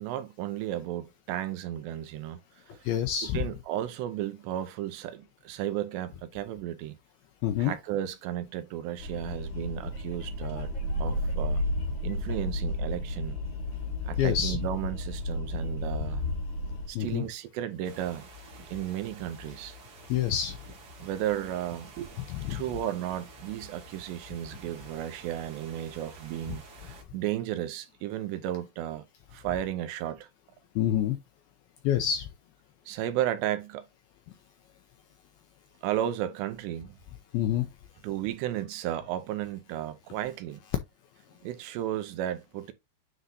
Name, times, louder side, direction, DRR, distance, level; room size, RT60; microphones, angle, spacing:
voice 1, 0.0-2.4 2.7-2.8 3.3-7.0 7.6-10.7 11.0-11.6 12.0-13.4 14.1-16.2 16.9-18.3 18.7-19.8 21.0-22.1 22.5-29.1 29.3-30.3 32.9-33.9 35.8-37.0 38.0-40.6 41.4-42.7, right 12 dB, 80° right, 2.8 m, -34 dB
voice 2, 2.8-3.4 7.4-7.7 14.2-14.6 17.0-17.2 20.1-20.6 22.3-22.6 30.8-31.2 31.8-32.3 37.3-37.7, left 10 dB, 80° left, 2.2 m, -27 dB
sound 1, 9.0-16.9, left 1 dB, 50° left, 1.5 m, -32 dB
sound 2, 17.8-27.0, right 1 dB, 50° right, 1.7 m, -49 dB
9.4 x 3.9 x 2.6 m
omnidirectional pair, 5.1 m